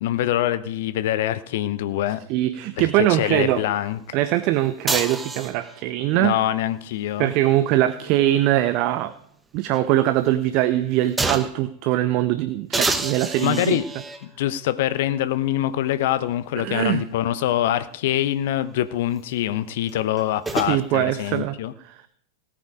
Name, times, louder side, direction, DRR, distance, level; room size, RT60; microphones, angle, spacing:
voice 1, 0.0-2.2 3.1-4.2 6.1-7.3 13.4-13.8 14.2-21.7, left 12 dB, 55° left, 14 dB, 0.8 m, -24 dB
voice 2, 2.3-3.6 4.1-6.3 7.2-9.1 9.5-13.8 16.6-17.0 20.5-21.6 21.8-22.0, right 14 dB, 40° right, 13 dB, 0.6 m, -22 dB
sound 1, 4.9-5.8 7.6-9.1 9.6-9.7 11.2-11.7 12.7-14.3 15.2-15.3 19.9-20.7, right 3 dB, 10° right, 1.0 m, -28 dB
17.5 x 8.6 x 5.0 m, 0.70 s
figure-of-eight pair, 90°, 0 cm